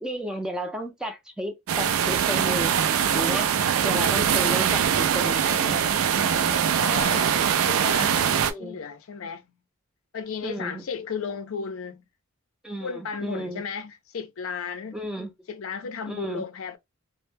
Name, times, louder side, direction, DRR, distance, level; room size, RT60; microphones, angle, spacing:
voice 1, 0.0-3.5 3.8-5.8 6.3-7.4 7.8-7.9 8.4-8.8 10.4-10.8 12.6-13.6 14.9-15.3 16.1-16.4, equal, 5° right, 0.4 m, -33 dB
sound 1, 1.7-8.5, right 8 dB, 80° right, 0.4 m, -22 dB
voice 2, 6.8-7.4 7.7-9.5 10.1-12.0 12.8-15.0 15.5-16.8, left 6 dB, 75° left, 0.5 m, -34 dB
2.1 x 2.0 x 3.1 m
head